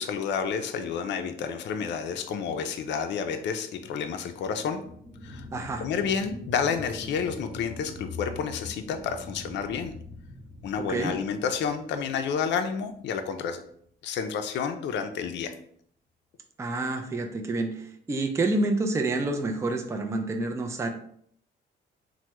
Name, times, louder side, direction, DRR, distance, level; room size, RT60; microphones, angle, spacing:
voice 1, 0.0-4.8 5.2-5.4 5.8-9.9 10.6-13.6 14.0-15.5, left 6 dB, 65° left, 7 dB, 0.4 m, -30 dB
sound 1, 4.2-13.1 13.6-13.7, left 2 dB, 40° right, 0.8 m, -43 dB
voice 2, 5.5-5.8 10.8-11.1 16.6-20.9, right 2 dB, 15° right, 4 dB, 0.4 m, -28 dB
3.3 x 2.1 x 2.9 m, 0.65 s
cardioid pair, 90°, 20 cm